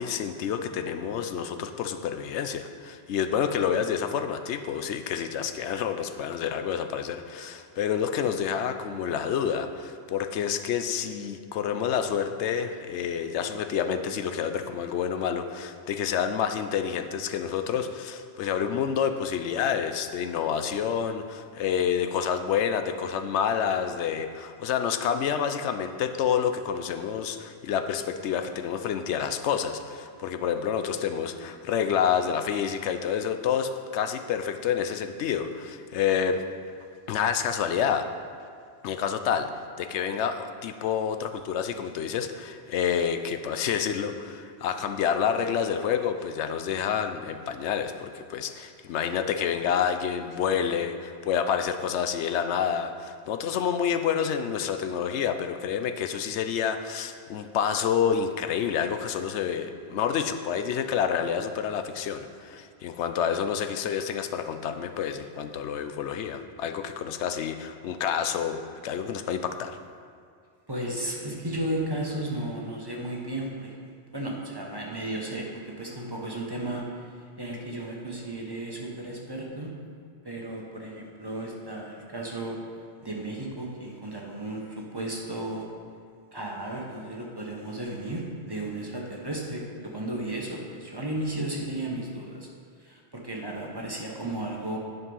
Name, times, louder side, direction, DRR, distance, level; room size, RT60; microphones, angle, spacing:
voice 1, 0.0-36.4 37.1-38.1 38.8-39.5 39.8-69.8, left 8 dB, 90° left, 8 dB, 0.9 m, -28 dB
voice 2, 70.7-79.7 80.2-82.6 83.0-85.7 86.3-89.6 89.9-92.5 92.8-94.8, right 1 dB, 20° right, -2 dB, 1.1 m, -34 dB
9.8 x 5.3 x 5.5 m, 2.2 s
omnidirectional pair, 1.1 m